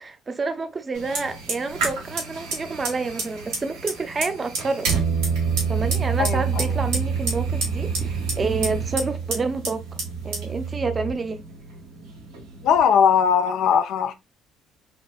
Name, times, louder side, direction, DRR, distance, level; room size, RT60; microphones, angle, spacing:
voice 1, 0.0-4.9 5.7-9.8 10.2-11.4, right 4 dB, 35° right, 0.7 m, -28 dB
Fire, 0.9-12.8, right 3 dB, 80° right, 1.8 m, -31 dB
sound 1, 4.9-11.1, right 6 dB, 50° right, 1.3 m, -27 dB
voice 2, 6.2-6.6 12.6-14.1, left 7 dB, 70° left, 0.4 m, -19 dB
5.8 x 2.2 x 2.3 m
hypercardioid pair, 60°, 0 cm